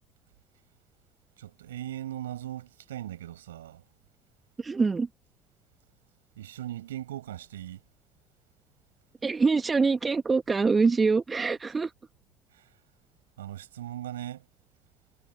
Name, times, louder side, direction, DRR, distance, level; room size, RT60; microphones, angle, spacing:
voice 1, 1.4-3.8 6.4-7.8 12.5-12.7 13.4-14.5, right 12 dB, 75° right, 6.3 m, -39 dB
voice 2, 4.6-5.1 9.2-11.9, right 4 dB, 25° right, 1.7 m, -24 dB
figure-of-eight pair, 50°, 0 cm